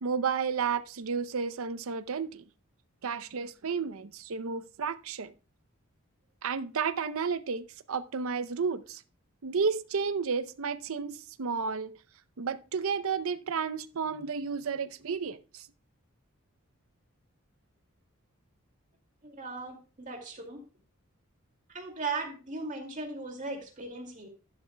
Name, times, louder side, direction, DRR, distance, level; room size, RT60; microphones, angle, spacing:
voice 1, 0.0-2.4 3.0-5.3 6.4-9.0 9.4-11.9 12.4-15.7, right 5 dB, 75° right, 0.6 m, -32 dB
voice 2, 19.2-20.6 21.7-24.3, right 3 dB, 35° right, 2.3 m, -37 dB
11.5 x 11.0 x 2.2 m
head